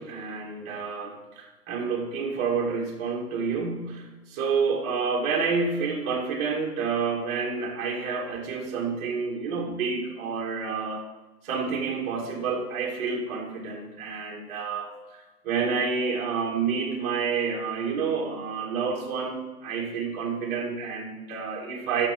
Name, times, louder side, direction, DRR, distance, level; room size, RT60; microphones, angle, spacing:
voice 1, 0.0-11.0 11.4-22.1, right 5 dB, 25° right, -1 dB, 2.1 m, -29 dB
11.0 x 7.1 x 5.2 m, 1.1 s
hypercardioid pair, 150°, 46 cm